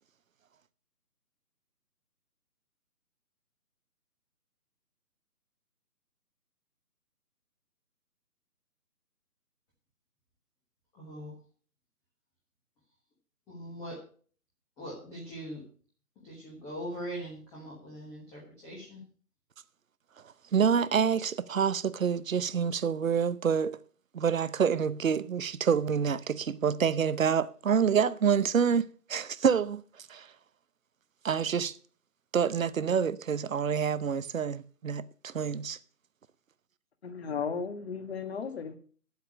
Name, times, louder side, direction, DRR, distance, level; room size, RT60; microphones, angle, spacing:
voice 1, 10.9-11.3 13.5-14.0 14.8-15.6 16.2-19.0, equal, 5° left, 1.2 m, -41 dB
voice 2, 20.5-23.8 24.1-30.3 31.2-31.8 32.3-35.8, right 7 dB, 55° right, 0.8 m, -27 dB
voice 3, 37.0-38.8, left 6 dB, 40° left, 1.7 m, -35 dB
9.6 x 8.3 x 6.2 m
figure-of-eight pair, 150°, 47 cm